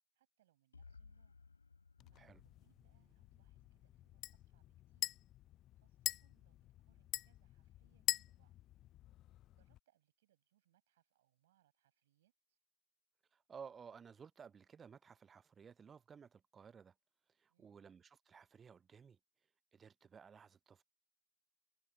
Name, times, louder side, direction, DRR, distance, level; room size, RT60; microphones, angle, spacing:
voice 1, 0.1-1.3 2.1-5.2 5.7-8.6 9.5-12.6 17.5-17.9, right 14 dB, 55° right, 7.2 m, -79 dB
sound 1, 0.7-4.6, left 4 dB, 75° left, 3.3 m, -62 dB
sound 2, 2.0-9.8, left 14 dB, 35° left, 0.5 m, -45 dB
voice 2, 13.3-16.9 17.4-19.2 19.7-20.8, right 6 dB, 20° right, 0.5 m, -56 dB
figure-of-eight pair, 90°, 0 cm